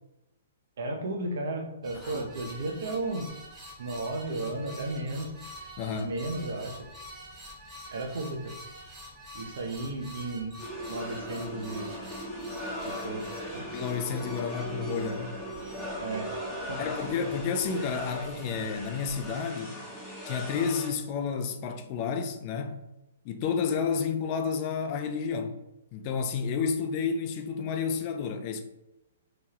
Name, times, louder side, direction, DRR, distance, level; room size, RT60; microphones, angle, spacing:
voice 1, 0.8-3.3 3.8-5.3 6.0-6.9 7.9-8.5 9.3-10.6 10.9-11.9 12.8-13.7 16.0-16.4 16.7-16.8, right 2 dB, 60° right, 0.6 m, -34 dB
sound 1, 1.8-19.4, left 1 dB, 15° right, 1.0 m, -47 dB
voice 2, 5.8-6.2 13.7-15.4 16.8-19.8 20.2-22.8 23.2-25.6 25.9-28.6, left 6 dB, 40° left, 0.4 m, -31 dB
sound 2, 10.6-20.9, equal, 10° left, 0.7 m, -38 dB
2.9 x 2.2 x 2.8 m
figure-of-eight pair, 120°, 0 cm